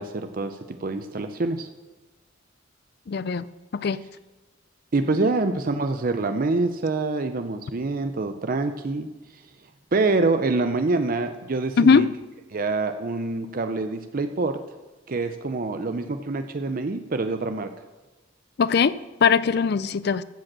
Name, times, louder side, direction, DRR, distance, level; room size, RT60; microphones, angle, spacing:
voice 1, 0.0-1.7 4.9-9.1 9.3-9.4 9.9-12.1 12.5-14.6 15.1-17.7, right 3 dB, 45° right, 8 dB, 0.5 m, -26 dB
voice 2, 3.1-3.5 3.8-4.0 11.8-12.1 18.6-18.9 19.2-20.2, left 5 dB, 55° left, 16 dB, 0.4 m, -20 dB
14.5 x 5.1 x 7.5 m, 1.2 s
head